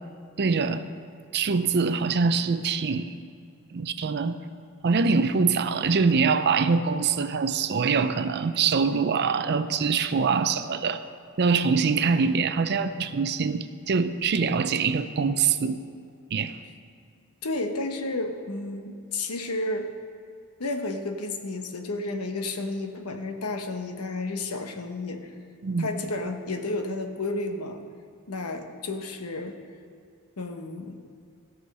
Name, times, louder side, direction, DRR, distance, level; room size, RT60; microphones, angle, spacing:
voice 1, 0.4-0.8 1.3-3.2 3.7-4.4 4.8-11.0 11.4-15.8 16.3-16.6 25.6-25.9, right 5 dB, 50° right, 11 dB, 0.5 m, -24 dB
voice 2, 17.4-19.9 20.6-25.2 25.8-27.8 28.3-29.6 30.4-31.0, left 2 dB, 80° left, 6 dB, 1.0 m, -31 dB
16.5 x 6.4 x 5.4 m, 2.4 s
head